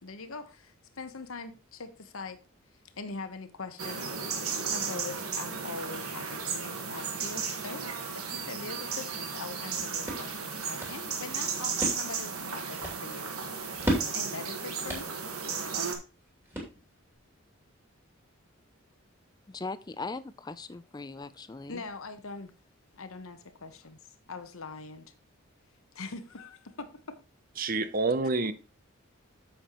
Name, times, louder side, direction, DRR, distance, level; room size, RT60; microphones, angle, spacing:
voice 1, 0.0-2.4 3.0-4.2 4.5-13.3 14.1-15.1 21.7-22.5 22.9-24.0 24.3-25.1 25.9-27.2 28.4-28.5, left 4 dB, 75° left, 1.0 m, -42 dB
sound 1, 3.8-16.0, right 5 dB, 90° right, 1.5 m, -34 dB
sound 2, 9.7-17.2, right 1 dB, 10° right, 2.6 m, -38 dB
voice 2, 19.5-21.8, left 3 dB, 20° left, 0.4 m, -39 dB
voice 3, 27.6-28.5, right 3 dB, 40° right, 0.6 m, -27 dB
8.7 x 7.1 x 3.0 m
head